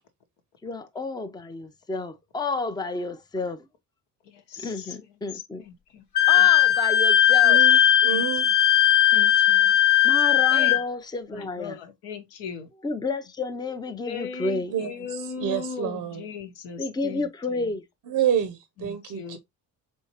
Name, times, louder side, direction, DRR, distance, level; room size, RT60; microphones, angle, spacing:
voice 1, 0.6-3.6 4.6-5.6 6.3-7.6 10.0-11.8 12.8-14.7 16.8-17.8, left 3 dB, 10° left, 0.6 m, -30 dB
voice 2, 4.3-5.0 5.3-6.0 6.3-6.5 8.1-8.5 9.1-9.7 10.5-10.8 11.3-12.7 14.1-17.7 18.8-19.4, left 6 dB, 60° left, 1.0 m, -38 dB
Wind instrument woodwind instrument, 6.2-10.8, left 12 dB, 35° left, 1.1 m, -18 dB
voice 3, 7.4-8.5 14.7-16.2 18.1-19.4, right 9 dB, 45° right, 0.7 m, -28 dB
4.5 x 3.1 x 2.9 m
hypercardioid pair, 50°, 48 cm